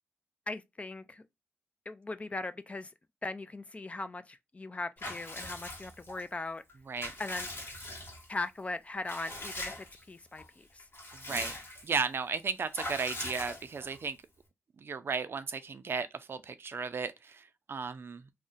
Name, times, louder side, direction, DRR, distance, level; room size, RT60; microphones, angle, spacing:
voice 1, 0.5-1.2 1.9-2.9 3.2-6.6 7.2-7.5 8.3-10.8, left 2 dB, 30° left, 0.3 m, -39 dB
Water / Bathtub (filling or washing) / Liquid, 5.0-6.2 6.7-8.4 9.1-10.0 10.4-10.5 10.8-12.0 12.7-14.0, left 1 dB, 50° left, 1.2 m, -41 dB
voice 2, 11.3-11.6 11.8-14.2 14.8-18.2, right 5 dB, 55° right, 0.4 m, -35 dB
2.6 x 2.1 x 3.7 m
wide cardioid pair, 90°, 5 cm